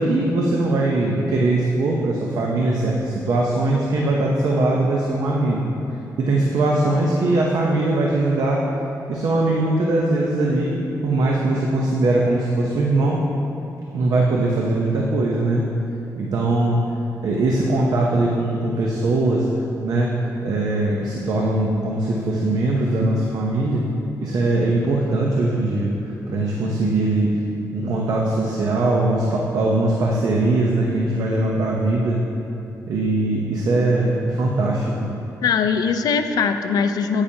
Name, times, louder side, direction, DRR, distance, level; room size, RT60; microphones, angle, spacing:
voice 1, 0.0-5.7 6.2-8.7 9.1-13.2 13.9-15.7 16.2-16.8 17.2-19.5 19.8-23.8 24.2-25.9 26.3-27.4 27.7-32.2 32.9-35.1, right 2 dB, 65° right, -2 dB, 0.8 m, -21 dB
voice 2, 35.4-37.2, left 6 dB, 75° left, 8 dB, 0.5 m, -21 dB
9.7 x 8.7 x 2.8 m, 2.9 s
wide cardioid pair, 145°, 7 cm